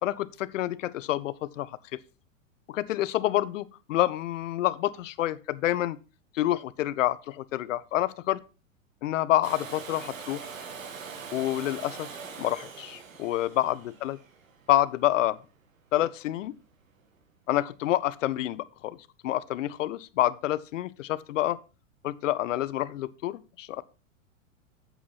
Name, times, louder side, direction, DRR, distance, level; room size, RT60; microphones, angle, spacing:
voice 1, 0.0-1.7 2.7-6.0 6.3-8.4 9.0-10.5 11.3-12.1 12.4-14.2 14.7-15.4 15.9-16.6 17.5-19.0 19.2-21.6 22.0-23.8, left 14 dB, 70° left, 0.8 m, -28 dB
Domestic sounds home sounds, 9.4-15.2 17.2-17.3, right 5 dB, 85° right, 1.9 m, -42 dB
8.5 x 7.3 x 4.1 m
hypercardioid pair, 115°, 39 cm